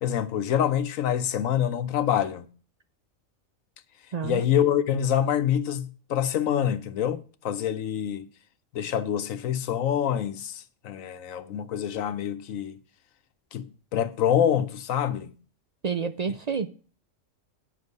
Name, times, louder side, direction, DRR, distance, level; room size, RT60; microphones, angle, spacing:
voice 1, 0.0-2.5 4.2-8.3 8.7-12.8 13.5-15.3, left 9 dB, 75° left, 1.2 m, -26 dB
voice 2, 4.1-4.4 15.8-16.7, right 6 dB, 55° right, 0.4 m, -29 dB
9.8 x 6.2 x 5.3 m
omnidirectional pair, 1.4 m